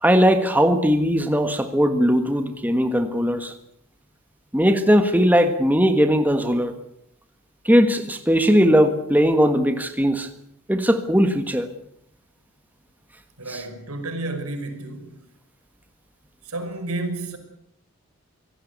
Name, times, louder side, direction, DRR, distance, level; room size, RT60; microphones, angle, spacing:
voice 1, 0.0-3.5 4.5-6.7 7.6-10.3 10.7-11.7 13.5-13.6, equal, 10° right, 1.5 m, -19 dB
voice 2, 13.4-15.2 16.4-17.4, right 2 dB, 85° right, 5.6 m, -31 dB
25.5 x 17.5 x 8.2 m
head